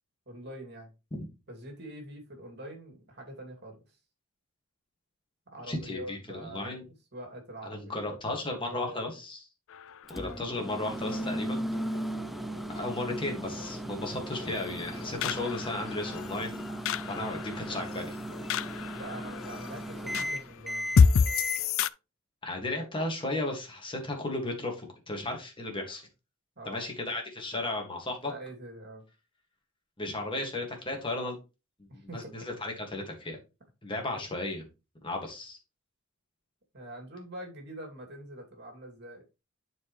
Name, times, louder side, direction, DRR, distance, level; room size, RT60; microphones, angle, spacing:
voice 1, 0.3-0.9 1.5-3.8 5.5-9.0 18.8-21.0 26.6-26.9 28.2-29.0 31.9-32.4 34.1-34.3 36.7-39.2, right 1 dB, 50° right, 2.5 m, -44 dB
voice 2, 5.7-6.8 7.6-9.4 10.1-11.6 12.7-16.7 17.1-18.2 22.4-26.0 26.7-28.3 30.0-31.4 32.1-33.4 33.8-34.6 35.0-35.6, left 2 dB, 25° left, 1.8 m, -34 dB
sound 1, 9.7-21.9, left 6 dB, 65° left, 0.4 m, -31 dB
Microwave oven, 10.1-21.6, equal, ahead, 0.4 m, -37 dB
11.0 x 4.6 x 3.1 m
head